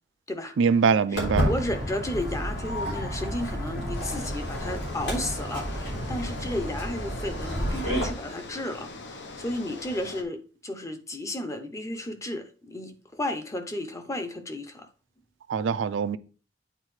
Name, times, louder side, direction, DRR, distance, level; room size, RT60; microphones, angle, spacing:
voice 1, 0.6-1.5 15.5-16.2, right 6 dB, 85° right, 0.4 m, -23 dB
Walk footsteps, 1.1-8.1, equal, 80° left, 3.6 m, -30 dB
voice 2, 1.4-14.9, left 1 dB, 15° left, 0.7 m, -33 dB
sound 1, 3.9-10.2, left 3 dB, 65° left, 0.8 m, -42 dB
8.8 x 4.2 x 3.2 m
head